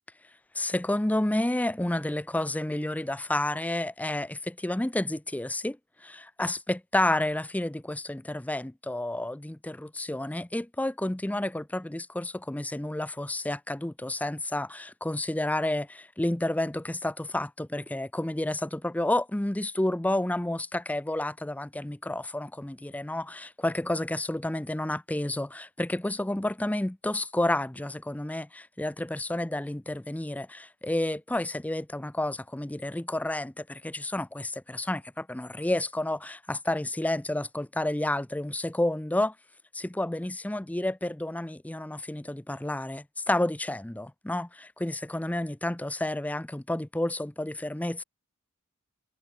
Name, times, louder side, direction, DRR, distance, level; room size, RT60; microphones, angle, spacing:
voice 1, 0.5-39.3 39.7-48.0, left 1 dB, 5° left, 0.5 m, -30 dB
head